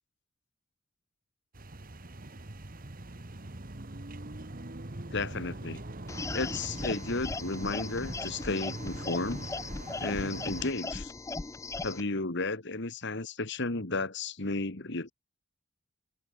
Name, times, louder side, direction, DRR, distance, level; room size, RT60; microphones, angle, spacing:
sound 1, 1.5-10.7, right 2 dB, 45° right, 1.6 m, -42 dB
voice 1, 5.1-5.8 6.3-9.5 10.0-11.1 11.8-15.1, left 3 dB, 60° left, 2.2 m, -33 dB
sound 2, 6.1-12.0, left 3 dB, 15° left, 0.4 m, -38 dB
head